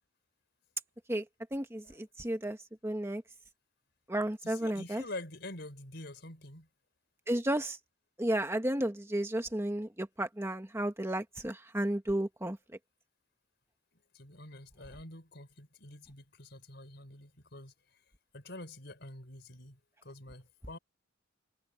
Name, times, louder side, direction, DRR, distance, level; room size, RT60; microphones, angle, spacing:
voice 1, 1.5-2.6 2.8-3.2 4.1-5.0 7.3-7.8 8.2-12.6, right 1 dB, 15° right, 1.5 m, -33 dB
voice 2, 4.4-6.7 13.9-17.7 18.3-20.8, left 2 dB, 60° left, 5.4 m, -47 dB
head